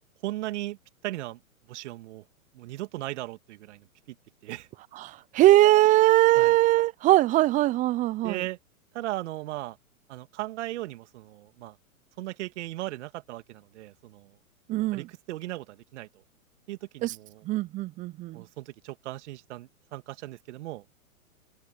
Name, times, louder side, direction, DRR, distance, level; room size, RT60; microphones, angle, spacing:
voice 1, 0.2-0.8 1.0-1.4 1.7-2.2 2.5-3.9 4.4-4.7 6.4-6.6 8.2-8.6 8.9-9.8 10.1-11.8 12.2-14.4 14.9-16.1 16.7-17.4 18.3-20.8, right 16 dB, 50° right, 2.5 m, -37 dB
voice 2, 5.0-8.4 14.7-15.0 17.0-17.1 17.5-18.4, right 16 dB, 20° right, 0.6 m, -21 dB
open air
hypercardioid pair, 115°, 43 cm